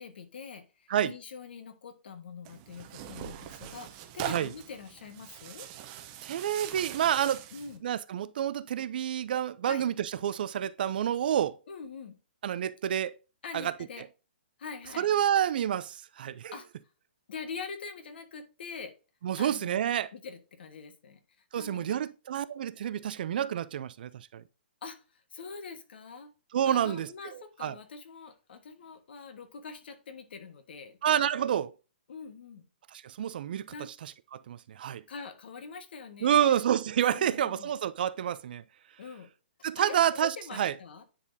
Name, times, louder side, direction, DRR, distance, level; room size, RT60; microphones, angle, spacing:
voice 1, 0.0-5.7 7.5-7.8 9.7-9.8 11.7-12.2 13.4-14.1 14.6-15.1 16.5-16.7 17.3-18.9 19.4-19.8 20.1-21.2 21.5-22.0 24.8-25.0 25.3-26.3 26.7-31.0 32.1-32.6 33.7-33.9 35.1-36.6 37.1-37.7 39.0-39.3 39.8-41.0, left 5 dB, 65° left, 1.6 m, -44 dB
Tearing, 2.4-7.8, right 11 dB, 30° right, 0.8 m, -42 dB
voice 2, 6.2-7.4 7.8-11.6 12.4-13.1 13.5-13.7 15.0-16.5 19.2-20.1 21.5-24.4 26.5-27.1 27.6-27.7 31.0-31.7 33.0-33.7 34.3-35.0 36.2-38.6 39.6-40.7, right 10 dB, 55° right, 0.5 m, -28 dB
9.7 x 4.1 x 2.7 m
hypercardioid pair, 150°, 6 cm